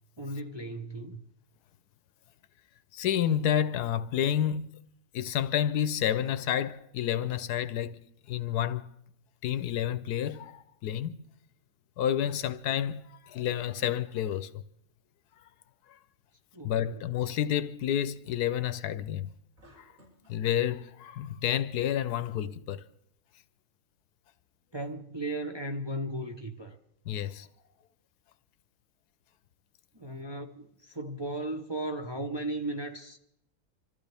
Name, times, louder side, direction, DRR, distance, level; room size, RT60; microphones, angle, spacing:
voice 1, 0.2-1.2 16.5-16.9 24.7-26.8 29.9-33.2, right 1 dB, 20° right, 0.7 m, -36 dB
voice 2, 2.9-4.7 5.1-8.0 8.3-8.9 9.4-11.2 12.0-14.6 16.6-19.3 19.8-19.9 20.3-22.8 27.1-27.5, left 10 dB, 85° left, 1.3 m, -30 dB
sound 1, 19.6-20.4, equal, 60° right, 5.8 m, -58 dB
25.5 x 14.0 x 3.4 m
omnidirectional pair, 1.6 m